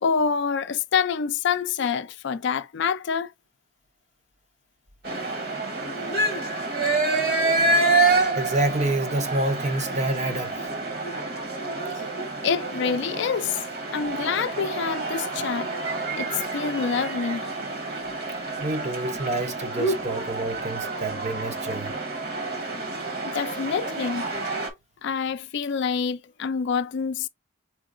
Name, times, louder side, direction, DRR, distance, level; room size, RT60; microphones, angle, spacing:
voice 1, 0.0-3.3 5.0-5.4 6.3-6.4 12.4-13.6 13.9-17.5 23.2-24.3 25.0-27.3, left 6 dB, 55° left, 0.4 m, -27 dB
sound 1, 5.1-24.7, right 3 dB, 50° right, 1.3 m, -28 dB
voice 2, 8.4-10.7 18.6-22.0, right 2 dB, 35° right, 0.6 m, -28 dB
4.4 x 3.9 x 2.5 m
head